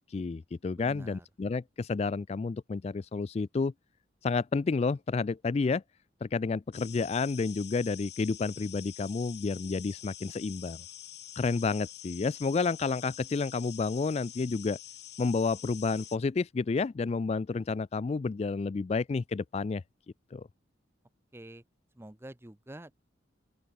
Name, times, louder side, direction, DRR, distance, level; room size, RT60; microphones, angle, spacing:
voice 1, 0.0-3.7 4.2-5.8 6.2-10.8 11.4-14.8 15.2-19.8 20.3-20.5, left 4 dB, 35° left, 0.3 m, -30 dB
voice 2, 0.8-1.3 21.3-21.6 21.9-22.9, right 1 dB, 15° right, 0.7 m, -47 dB
sound 1, 6.7-16.2, left 12 dB, 60° left, 3.1 m, -47 dB
open air
head